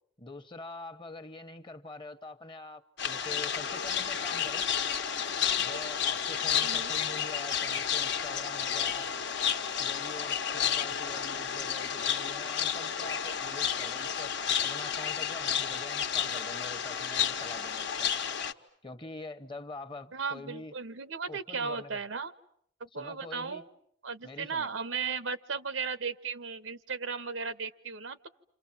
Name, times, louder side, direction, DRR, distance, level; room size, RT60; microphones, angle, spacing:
voice 1, 0.2-4.7 5.6-9.1 9.8-14.4 14.6-18.1 18.8-20.7 21.3-22.0 22.9-23.6 24.2-24.7, left 2 dB, 25° left, 1.1 m, -45 dB
sound 1, 3.0-18.5, left 8 dB, 65° left, 1.2 m, -31 dB
voice 2, 6.6-6.9 20.1-22.3 22.8-23.7 24.0-28.3, right 5 dB, 90° right, 1.1 m, -36 dB
29.5 x 27.5 x 7.3 m
head